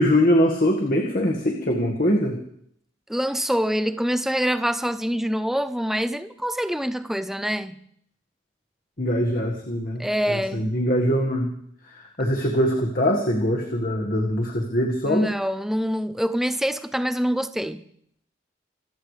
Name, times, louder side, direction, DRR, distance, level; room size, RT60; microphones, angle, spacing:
voice 1, 0.0-2.3 9.0-11.5 11.9-15.3, equal, 45° left, 1.8 m, -22 dB
voice 2, 3.1-7.8 10.0-10.7 15.1-17.8, equal, ahead, 0.6 m, -25 dB
26.5 x 14.5 x 3.4 m
head